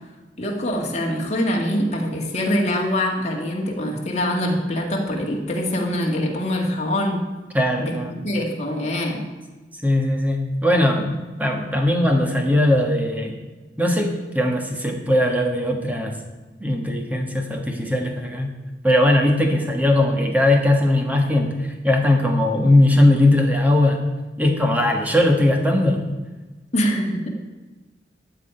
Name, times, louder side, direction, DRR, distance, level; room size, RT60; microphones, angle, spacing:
voice 1, 0.4-7.2 7.8-9.2 24.4-24.6 26.7-27.4, left 1 dB, 40° left, 0 dB, 2.0 m, -24 dB
voice 2, 7.5-8.1 9.8-11.1 11.4-13.3 13.8-16.1 16.6-18.5 18.8-24.0 24.4-26.0, left 1 dB, 10° right, 3 dB, 1.4 m, -19 dB
12.5 x 5.0 x 8.9 m, 1.2 s
head